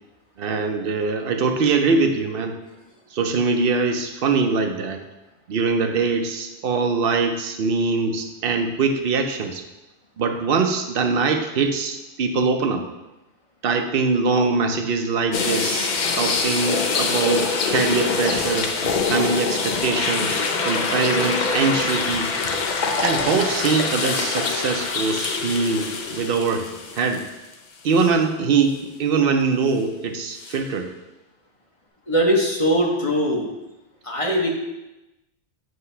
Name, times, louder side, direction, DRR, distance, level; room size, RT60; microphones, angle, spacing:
voice 1, 0.4-2.6 3.1-5.0 5.5-9.6 10.2-12.8 13.6-18.7 19.1-20.4 20.6-22.3 23.0-27.2 27.8-30.9, right 4 dB, 60° right, 5 dB, 0.8 m, -22 dB
sound 1, 15.3-27.5 28.0-28.1 30.4-30.6, left 4 dB, 50° left, 0.6 m, -24 dB
voice 2, 32.1-33.5 34.0-34.5, equal, 30° left, -1 dB, 0.9 m, -20 dB
7.9 x 2.9 x 5.5 m, 1.0 s
omnidirectional pair, 1.2 m